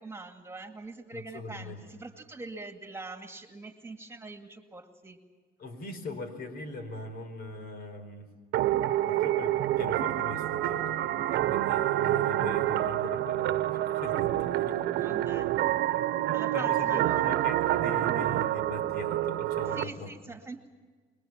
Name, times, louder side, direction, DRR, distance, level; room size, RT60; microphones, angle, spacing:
voice 1, 0.0-5.2 14.9-15.6 16.3-17.4 19.6-20.7, right 3 dB, 15° right, 5 dB, 2.2 m, -43 dB
voice 2, 1.1-1.9 5.6-8.3 9.1-15.1 16.5-20.1, left 2 dB, 65° left, 9 dB, 4.2 m, -41 dB
sound 1, 8.5-19.8, right 14 dB, 85° right, 1.0 m, -27 dB
26.0 x 22.5 x 7.3 m, 1.4 s
cardioid pair, 110°, 17 cm